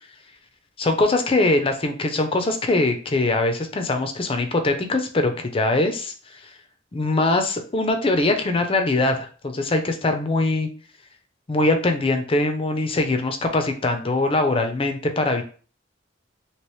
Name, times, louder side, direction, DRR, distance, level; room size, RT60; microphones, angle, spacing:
voice 1, 0.8-6.1 6.9-10.7 11.5-15.4, left 2 dB, 30° left, 6 dB, 0.5 m, -22 dB
3.0 x 2.9 x 3.2 m, 0.39 s
head